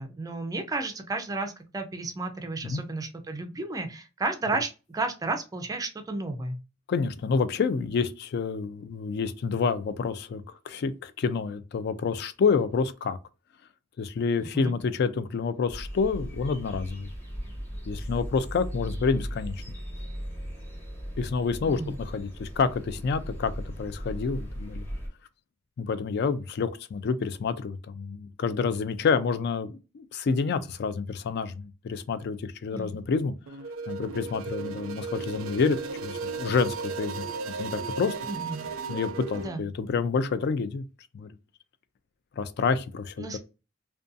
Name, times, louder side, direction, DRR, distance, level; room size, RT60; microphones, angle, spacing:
voice 1, 0.0-6.6 14.4-14.7 21.7-22.0 32.7-33.0 38.3-38.7 39.4-39.6 43.2-43.4, right 3 dB, 20° right, 0.4 m, -33 dB
voice 2, 6.9-13.2 14.0-17.1 17.9-19.5 21.2-23.5 23.8-24.8 25.8-33.3 33.9-35.8 36.0-37.3 37.6-38.1 38.9-40.8 41.1-41.3 42.4-43.4, left 5 dB, 55° left, 0.3 m, -28 dB
sound 1, 15.7-25.1, equal, 10° left, 1.0 m, -37 dB
sound 2, 33.5-39.5, right 4 dB, 90° right, 0.4 m, -35 dB
2.5 x 2.3 x 2.5 m
head